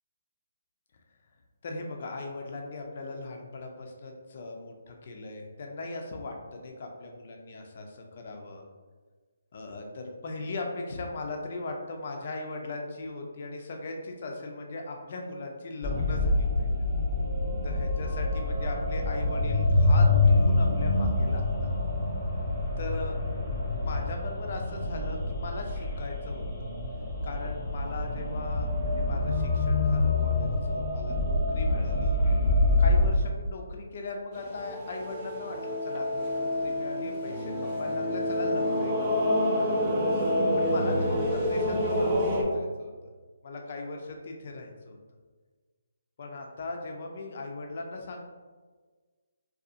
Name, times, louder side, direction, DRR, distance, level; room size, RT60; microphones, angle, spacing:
voice 1, 1.6-8.6 9.5-16.9 17.6-21.7 22.8-23.2 23.8-26.7 27.2-32.2 32.8-39.4 40.6-42.9 43.4-45.0 46.2-48.2, left 2 dB, 50° left, 2 dB, 0.4 m, -39 dB
sound 1, 15.8-33.1, left 2 dB, 20° left, 0.7 m, -26 dB
sound 2, 34.3-42.4, left 1 dB, 25° right, 0.5 m, -28 dB
2.6 x 2.3 x 2.4 m, 1.4 s
hypercardioid pair, 150°, 0 cm